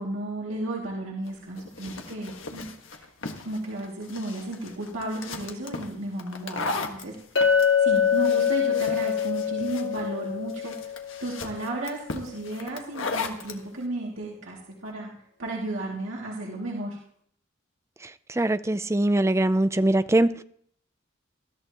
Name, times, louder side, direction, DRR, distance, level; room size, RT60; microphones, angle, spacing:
voice 1, 0.0-3.1 3.4-7.2 7.4-7.5 7.8-15.1 15.4-17.0, right 1 dB, 85° right, -3 dB, 2.4 m, -34 dB
sound 1, 1.3-13.6, left 3 dB, 80° left, 1.5 m, -37 dB
Chink clink, 7.4-11.6, left 7 dB, 60° left, 1.3 m, -24 dB
voice 2, 18.4-20.3, right 1 dB, 15° right, 12 dB, 0.5 m, -22 dB
20.5 x 13.5 x 3.0 m, 0.62 s
head